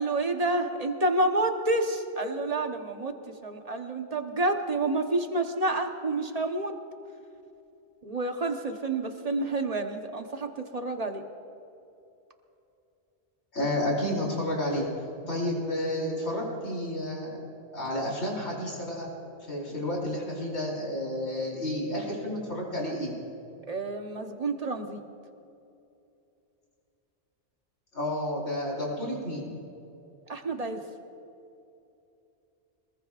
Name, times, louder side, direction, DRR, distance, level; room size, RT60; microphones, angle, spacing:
voice 1, 0.0-3.1 3.4-6.7 8.0-11.2 23.7-25.0 30.3-30.8, right 2 dB, 35° right, 5 dB, 1.1 m, -29 dB
voice 2, 13.5-14.8 15.3-17.4 17.7-19.1 19.5-23.1 27.9-29.5, left 1 dB, 70° left, -4 dB, 4.6 m, -31 dB
25.5 x 20.5 x 2.5 m, 2.7 s
omnidirectional pair, 1.2 m